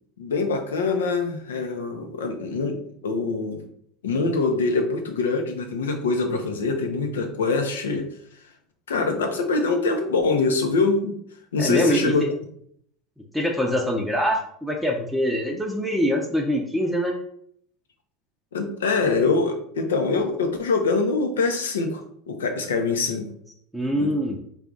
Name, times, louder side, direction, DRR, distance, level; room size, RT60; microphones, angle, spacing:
voice 1, 0.2-3.6 4.0-8.1 8.9-11.2 11.5-12.3 18.5-23.3 23.9-24.2, left 3 dB, 85° left, 4 dB, 0.6 m, -24 dB
voice 2, 11.6-12.1 13.3-17.2 23.7-24.4, equal, 5° right, 0 dB, 0.6 m, -24 dB
3.4 x 2.3 x 3.8 m, 0.67 s
hypercardioid pair, 85°, 0 cm